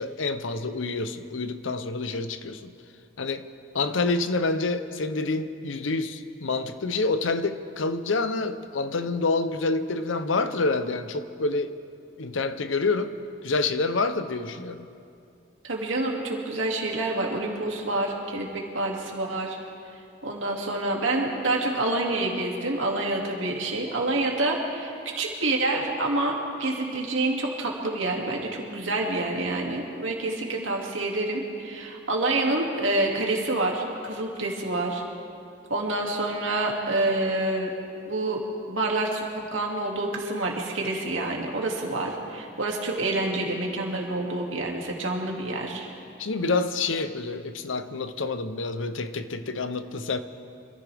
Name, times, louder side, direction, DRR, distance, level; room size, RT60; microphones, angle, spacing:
voice 1, 0.0-2.7 3.2-3.5 3.7-11.8 12.2-13.2 13.4-14.9 46.2-50.2, left 3 dB, 80° left, 11 dB, 0.8 m, -27 dB
voice 2, 15.6-19.6 20.2-35.0 35.7-37.7 38.1-45.9, right 2 dB, 80° right, -1 dB, 2.5 m, -27 dB
26.0 x 14.5 x 3.5 m, 2.5 s
head